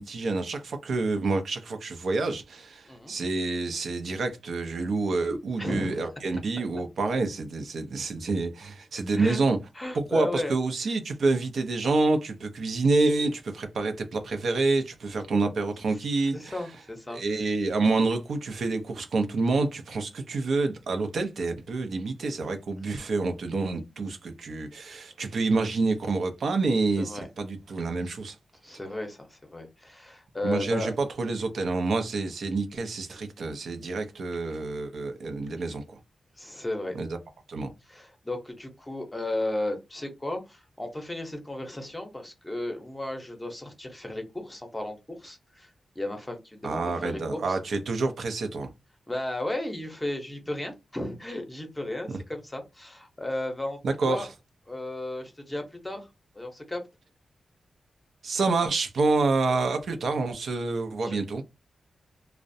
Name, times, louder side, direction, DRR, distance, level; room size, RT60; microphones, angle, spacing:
voice 1, 0.0-9.6 9.9-16.5 17.1-28.4 30.4-35.8 37.0-37.2 37.5-37.7 46.6-48.7 52.1-52.2 53.8-54.3 58.2-61.4, right 3 dB, 75° right, 0.5 m, -28 dB
voice 2, 5.6-6.1 9.1-9.4 9.7-10.5 15.9-16.0 16.3-17.2 25.3-25.4 27.0-27.3 28.6-30.9 36.4-37.0 37.9-45.7 46.0-47.6 49.1-53.8 54.0-54.3 54.7-56.1 56.3-56.8 61.0-61.2, left 1 dB, 15° left, 0.7 m, -34 dB
2.4 x 2.0 x 2.6 m
wide cardioid pair, 110°, 0 cm